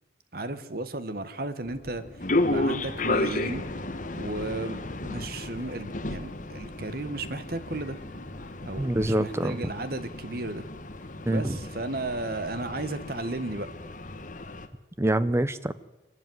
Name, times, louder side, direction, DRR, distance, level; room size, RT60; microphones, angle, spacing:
voice 1, 0.3-2.0 2.4-3.7 4.2-8.0 8.6-10.7 11.3-13.7, right 2 dB, 55° right, 12 dB, 1.4 m, -34 dB
sound 1, 1.6-9.1, left 1 dB, 85° left, 2.6 m, -46 dB
sound 2, 2.2-14.7, left 2 dB, 45° left, 1.4 m, -33 dB
voice 2, 8.8-9.6 11.3-11.6 15.0-15.7, right 1 dB, 15° right, 14 dB, 0.7 m, -25 dB
25.0 x 12.5 x 9.5 m, 1.1 s
head